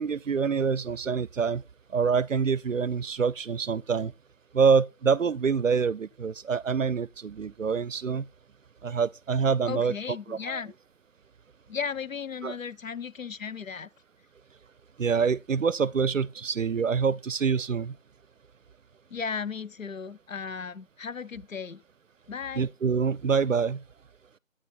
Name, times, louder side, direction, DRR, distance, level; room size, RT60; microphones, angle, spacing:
voice 1, 0.0-1.6 1.9-4.1 4.5-8.3 8.8-9.9 10.3-10.6 12.4-12.5 15.0-18.0 22.5-23.8, right 5 dB, 70° right, 0.5 m, -26 dB
voice 2, 9.7-10.7 11.7-13.9 19.1-21.8 22.3-22.7, left 6 dB, 75° left, 0.6 m, -35 dB
9.2 x 4.2 x 5.3 m
figure-of-eight pair, 170°, 40 cm